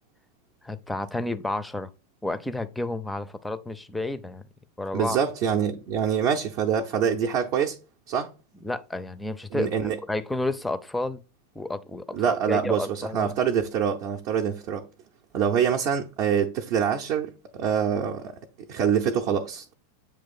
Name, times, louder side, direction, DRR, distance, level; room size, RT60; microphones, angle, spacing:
voice 1, 0.6-1.9 2.2-4.4 4.8-5.2 8.6-9.8 10.1-11.2 11.5-13.3, left 2 dB, 5° left, 0.5 m, -31 dB
voice 2, 4.9-7.8 8.1-8.3 9.5-10.0 12.1-14.8 15.3-18.3 18.7-19.7, right 8 dB, 40° right, 0.6 m, -25 dB
8.0 x 3.1 x 4.1 m
figure-of-eight pair, 90°, 0 cm